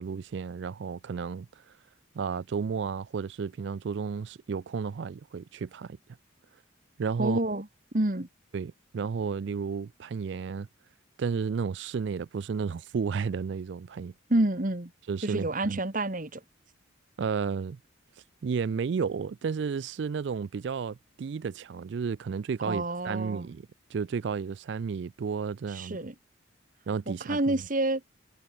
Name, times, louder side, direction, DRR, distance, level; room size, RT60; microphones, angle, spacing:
voice 1, 0.0-1.5 2.2-6.0 7.0-7.4 8.5-10.7 11.2-14.1 15.1-15.8 17.2-17.8 18.4-26.0 26.9-27.6, right 6 dB, 60° right, 0.3 m, -32 dB
voice 2, 7.2-7.7 7.9-8.3 14.3-14.9 15.2-16.4 22.6-23.5 25.7-26.1 27.1-28.0, right 1 dB, 40° right, 1.4 m, -28 dB
head